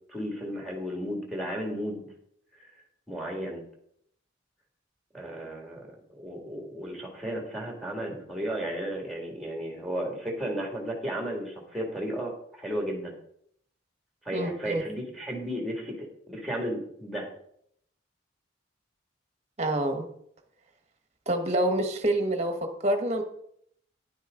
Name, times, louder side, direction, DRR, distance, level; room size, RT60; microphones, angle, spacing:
voice 1, 0.1-2.1 3.1-3.6 5.1-13.1 14.3-17.3, right 1 dB, ahead, 0 dB, 2.2 m, -34 dB
voice 2, 14.3-14.8 19.6-20.1 21.3-23.2, right 1 dB, 35° right, 6 dB, 1.2 m, -27 dB
10.5 x 9.3 x 3.8 m, 0.69 s
head